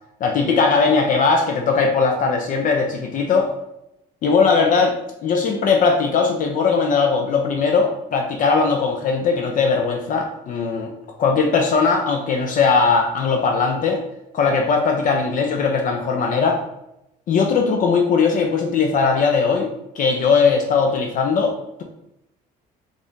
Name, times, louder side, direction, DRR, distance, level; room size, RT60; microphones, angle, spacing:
voice 1, 0.2-3.5 4.2-10.9 11.2-14.0 14.3-16.6 17.3-21.8, left 5 dB, 50° left, 2 dB, 0.5 m, -19 dB
3.9 x 2.4 x 3.6 m, 0.85 s
cardioid pair, 110°, 17 cm